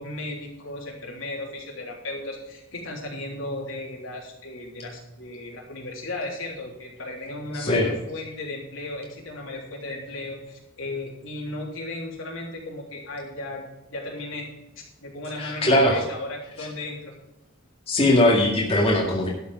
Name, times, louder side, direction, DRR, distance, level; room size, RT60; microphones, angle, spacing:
voice 1, 0.0-14.5 14.8-17.1, left 2 dB, 65° left, -1 dB, 3.4 m, -35 dB
voice 2, 7.5-7.9 15.3-16.0 17.9-19.3, left 1 dB, 30° left, -3 dB, 2.1 m, -20 dB
12.5 x 6.8 x 6.3 m, 0.92 s
head